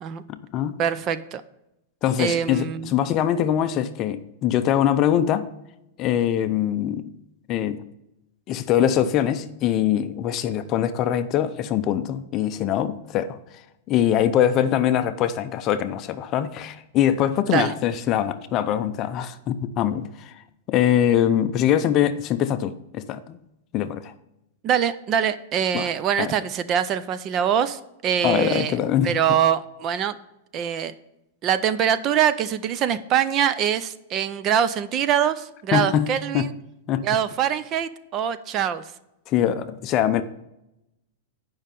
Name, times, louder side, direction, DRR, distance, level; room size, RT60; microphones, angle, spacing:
voice 1, 0.3-0.8 2.0-5.5 6.0-7.1 7.5-7.8 8.5-13.4 13.9-20.3 20.7-23.4 23.7-24.1 25.7-25.9 26.2-26.3 28.2-29.2 35.7-36.5 36.9-37.0 39.3-40.2, left 10 dB, 30° left, 11 dB, 0.5 m, -23 dB
voice 2, 0.8-1.4 2.2-2.9 17.5-17.7 24.6-28.8 29.0-30.2 30.5-30.9 31.4-36.5 37.0-38.8, right 9 dB, 30° right, 14 dB, 0.4 m, -23 dB
9.3 x 5.5 x 5.2 m, 0.87 s
supercardioid pair, 160°, 0 cm